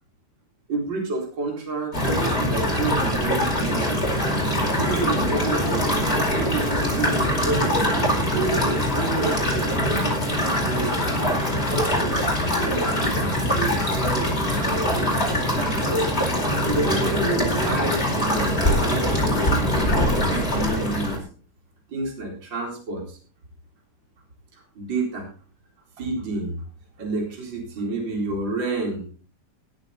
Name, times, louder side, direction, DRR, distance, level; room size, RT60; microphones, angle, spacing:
voice 1, 0.7-4.0 4.7-12.1 12.5-16.0 16.3-19.5 19.9-21.2 21.9-23.2 24.5-25.3 26.0-26.6 27.0-29.1, right 3 dB, 35° right, 0 dB, 4.4 m, -30 dB
sound 1, 1.9-21.2, equal, 20° left, 4.9 m, -23 dB
19.5 x 8.4 x 4.2 m, 0.41 s
omnidirectional pair, 3.5 m